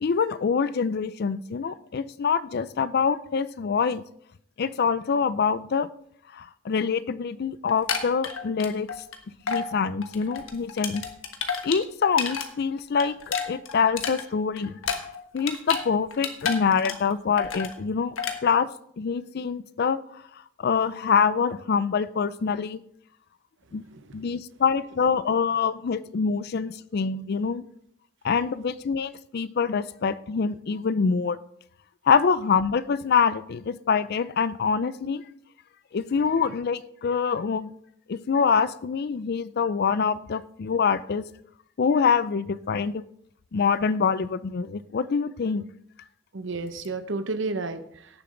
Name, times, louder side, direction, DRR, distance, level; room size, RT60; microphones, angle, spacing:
voice 1, 0.0-4.0 4.6-5.9 6.3-8.9 9.5-11.0 11.6-14.8 15.3-18.1 18.4-18.7 19.0-20.2 20.6-22.8 23.7-23.8 24.1-27.6 28.2-31.4 32.1-35.2 35.9-37.7 38.1-41.3 41.8-43.0 43.5-45.6, left 6 dB, 50° left, 16 dB, 0.4 m, -25 dB
sound 1, 7.7-9.2 9.5-9.7 10.0-12.5 12.8-15.8 16.1-17.1 17.4-17.7 18.2-18.4, left 6 dB, 70° left, 1.3 m, -30 dB
voice 2, 46.3-48.2, right 3 dB, 60° right, 10 dB, 0.9 m, -32 dB
17.0 x 7.0 x 3.8 m, 0.72 s
head